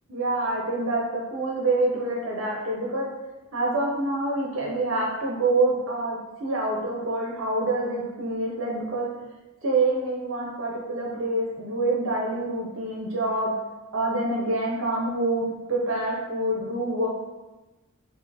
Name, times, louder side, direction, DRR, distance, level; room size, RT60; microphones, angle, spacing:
voice 1, 0.1-3.1 3.5-9.1 9.6-13.5 13.9-17.1, right 2 dB, 65° right, -3 dB, 0.7 m, -26 dB
5.4 x 2.4 x 2.7 m, 1.1 s
head